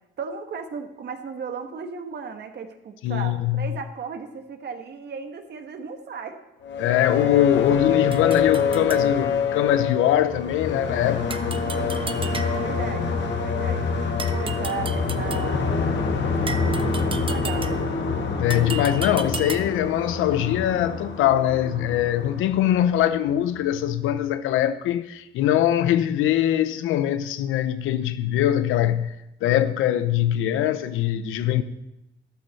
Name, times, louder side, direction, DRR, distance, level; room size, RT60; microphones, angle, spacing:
voice 1, 0.2-6.4 11.5-13.9 14.3-15.8 16.3-17.8, right 5 dB, 60° right, 1.3 m, -36 dB
voice 2, 3.0-3.7 6.8-11.4 18.4-29.1 29.4-31.6, left 11 dB, 90° left, 0.7 m, -22 dB
sound 1, 6.6-23.5, left 5 dB, 65° left, 1.6 m, -26 dB
sound 2, 8.1-9.1 11.3-12.8 14.2-15.6 16.5-18.0 18.5-19.9, right 5 dB, 25° right, 0.7 m, -35 dB
13.0 x 12.0 x 4.1 m
cardioid pair, 90°, 20 cm